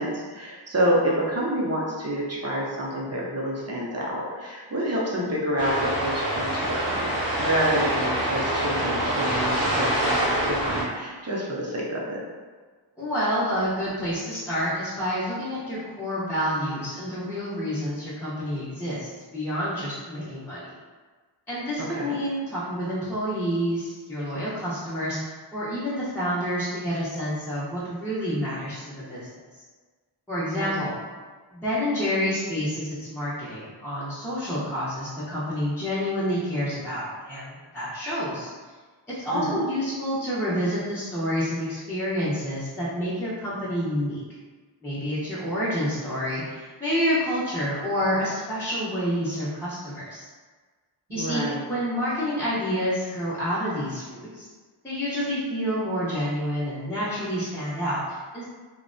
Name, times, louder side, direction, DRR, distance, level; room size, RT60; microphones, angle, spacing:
voice 1, 0.0-12.2 21.8-22.2 30.5-30.7 39.3-39.6 51.1-51.6, right 1 dB, 35° right, -4 dB, 0.6 m, -28 dB
sound 1, 5.6-10.8, right 1 dB, 50° right, 1.1 m, -25 dB
voice 2, 13.0-20.7 21.5-29.4 30.3-31.0 31.5-38.5 39.2-44.2 44.8-50.3 51.1-51.4 51.7-54.5 54.8-58.4, equal, 5° left, -12 dB, 0.7 m, -28 dB
2.5 x 2.1 x 2.5 m, 1.4 s
wide cardioid pair, 60°, 45 cm